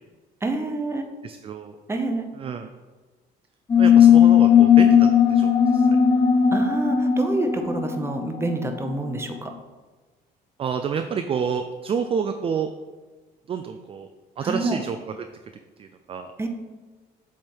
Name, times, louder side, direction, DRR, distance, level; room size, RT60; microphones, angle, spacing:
voice 1, 0.4-1.1 1.9-2.3 6.5-9.5 14.4-14.8 16.4-16.5, right 2 dB, 15° right, 4 dB, 0.8 m, -27 dB
voice 2, 1.2-1.8 2.4-2.7 3.8-6.0 10.6-12.7 13.5-14.1 14.4-15.1 15.8-16.3, right 6 dB, 35° right, 7 dB, 0.4 m, -29 dB
sound 1, 3.7-8.9, left 8 dB, 25° left, 0.6 m, -17 dB
7.6 x 3.5 x 4.5 m, 1.3 s
cardioid pair, 110°, 17 cm